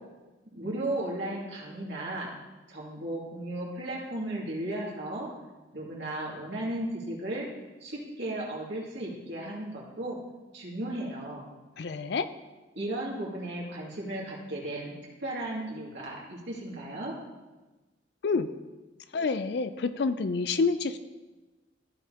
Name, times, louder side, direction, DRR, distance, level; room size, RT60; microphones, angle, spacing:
voice 1, 0.5-2.3 2.7-5.3 5.7-7.5 7.8-10.2 10.5-11.5 12.7-14.9 15.2-17.1, right 1 dB, 70° right, -5 dB, 2.4 m, -35 dB
voice 2, 11.8-12.3 18.2-18.5 19.1-21.0, left 4 dB, 60° left, 12 dB, 0.4 m, -28 dB
14.5 x 5.2 x 2.9 m, 1.2 s
head